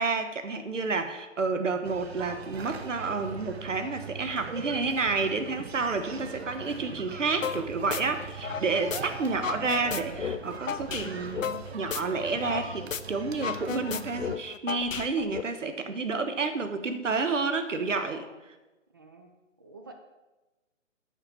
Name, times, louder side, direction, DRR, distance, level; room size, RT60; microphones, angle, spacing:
voice 1, 0.0-18.2, right 4 dB, 70° right, 8 dB, 1.2 m, -30 dB
sound 1, 1.8-14.4, right 5 dB, 55° right, 0.9 m, -41 dB
voice 2, 5.6-5.9 7.8-8.2 8.8-9.2 17.9-18.5 18.9-19.3 19.6-19.9, right 3 dB, 20° right, 4 dB, 0.4 m, -50 dB
sound 2, 7.4-7.6 7.9-9.0 9.3-12.6 12.9-13.0 13.3-15.4, left 7 dB, 85° left, 0.6 m, -33 dB
7.9 x 5.5 x 5.9 m, 1.1 s
figure-of-eight pair, 135°, 39 cm